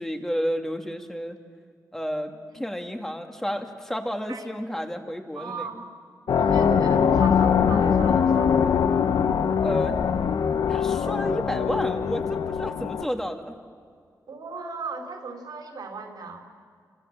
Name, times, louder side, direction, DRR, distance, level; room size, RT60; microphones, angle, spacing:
voice 1, 0.0-1.4 1.9-2.3 2.6-5.6 9.6-10.0 10.7-13.6, equal, 5° left, 3 dB, 2.5 m, -31 dB
voice 2, 2.3-2.6 4.3-4.5 5.3-5.8 6.4-8.6 14.3-16.5, right 4 dB, 80° right, 3 dB, 4.3 m, -37 dB
sound 1, 6.3-13.0, left 7 dB, 90° left, 1.0 m, -22 dB
29.5 x 26.5 x 7.4 m, 2.1 s
wide cardioid pair, 110°, 7 cm